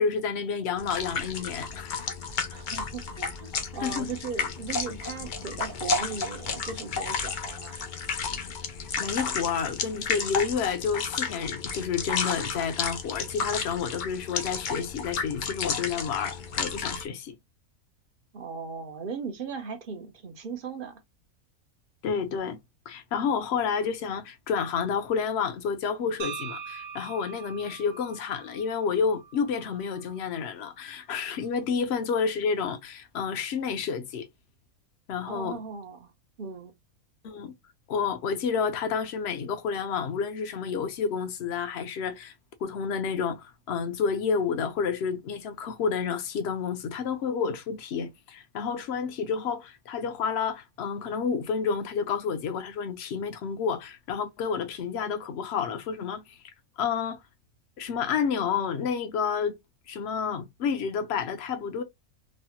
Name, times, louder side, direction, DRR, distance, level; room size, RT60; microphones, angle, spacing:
voice 1, 0.0-2.1 3.8-4.1 8.7-17.4 22.0-22.6 22.9-34.3 35.1-35.6 37.2-37.5 37.9-42.3 42.6-56.4 56.8-57.2 57.8-59.6 59.9-61.8, left 6 dB, 60° left, 0.8 m, -30 dB
sound 1, 0.8-17.1, left 5 dB, 85° left, 0.4 m, -32 dB
voice 2, 2.5-7.8 18.3-21.0 35.2-36.1 36.4-36.7, right 5 dB, 55° right, 0.6 m, -37 dB
sound 2, 26.2-30.3, right 6 dB, 70° right, 0.9 m, -42 dB
3.2 x 2.1 x 2.7 m
omnidirectional pair, 1.5 m